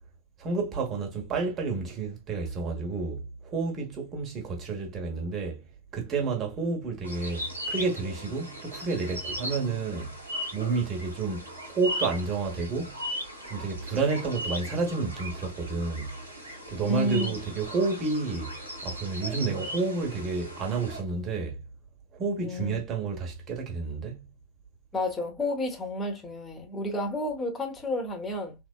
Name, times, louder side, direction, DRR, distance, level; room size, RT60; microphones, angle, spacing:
voice 1, 0.4-5.6 5.9-10.2 10.5-13.0 13.4-16.2 16.7-21.6 22.1-24.3, right 4 dB, 30° right, 1.0 m, -30 dB
sound 1, 7.0-21.0, equal, 80° right, 0.7 m, -38 dB
voice 2, 16.8-17.4 22.4-22.8 24.9-28.6, left 1 dB, 15° left, 0.9 m, -30 dB
3.3 x 2.1 x 2.3 m
figure-of-eight pair, 90°, 0 cm